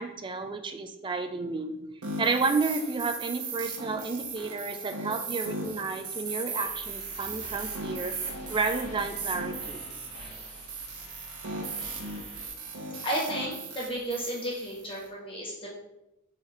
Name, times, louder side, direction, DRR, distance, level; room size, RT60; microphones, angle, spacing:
voice 1, 0.0-1.8 2.2-9.8, right 4 dB, 20° right, 6 dB, 0.3 m, -31 dB
sound 1, 2.0-15.1, right 3 dB, 70° right, 0.9 m, -37 dB
sound 2, 6.6-12.5, left 1 dB, 70° left, 1.3 m, -48 dB
voice 2, 13.0-15.8, right 1 dB, 25° left, -4 dB, 1.3 m, -33 dB
3.9 x 3.0 x 4.1 m, 0.90 s
head